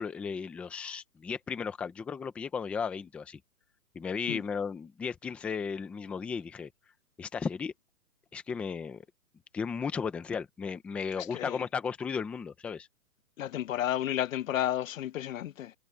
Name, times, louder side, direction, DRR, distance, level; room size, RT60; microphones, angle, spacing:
voice 1, 0.0-3.4 3.9-6.7 7.2-7.7 8.3-9.1 9.5-12.9, left 6 dB, 5° left, 0.5 m, -35 dB
voice 2, 11.2-11.6 13.4-15.7, left 12 dB, 55° left, 1.1 m, -32 dB
hypercardioid pair, 145°, 47 cm